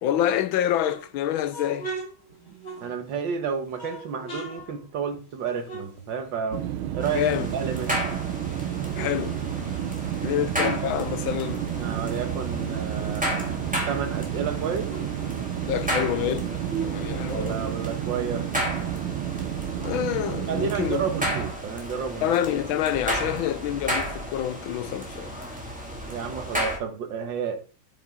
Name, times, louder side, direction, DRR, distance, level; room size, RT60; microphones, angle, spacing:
voice 1, 0.0-1.9 7.1-7.5 9.0-9.4 10.2-11.6 15.6-17.6 19.8-21.0 22.2-25.4, left 11 dB, 75° left, 1.4 m, -27 dB
sound 1, 0.6-3.3 3.7-6.6 6.9-8.2 8.6-10.9 11.2-13.7 14.1-14.2 14.4-17.9, right 4 dB, 30° left, 3.3 m, -40 dB
voice 2, 2.8-6.7 6.9-7.9 10.2-10.4 11.8-13.3 13.8-14.9 17.3-18.5 20.5-22.3 26.0-27.6, right 6 dB, 65° right, 1.9 m, -31 dB
sound 2, 6.5-21.5, right 12 dB, 80° right, 1.6 m, -31 dB
sound 3, 7.0-26.8, equal, 5° right, 2.0 m, -33 dB
8.8 x 8.3 x 3.7 m
omnidirectional pair, 2.2 m